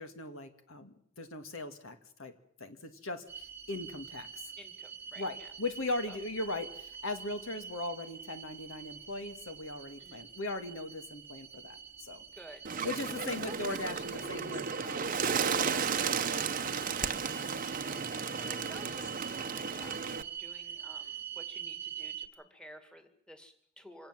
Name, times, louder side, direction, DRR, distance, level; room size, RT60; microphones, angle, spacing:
voice 1, 0.0-4.3 5.2-12.2 12.8-17.2 17.5-17.7, left 2 dB, 70° left, 8 dB, 2.0 m, -39 dB
sound 1, 3.3-22.3, right 7 dB, 10° right, 1.2 m, -45 dB
voice 2, 4.6-5.5 6.1-6.2 10.0-10.2 12.3-12.9 13.3-14.0 17.8-24.1, equal, 5° left, 8 dB, 2.1 m, -53 dB
Bird, 12.6-20.2, right 6 dB, 40° right, 0.9 m, -34 dB
26.0 x 17.5 x 7.6 m, 0.65 s
head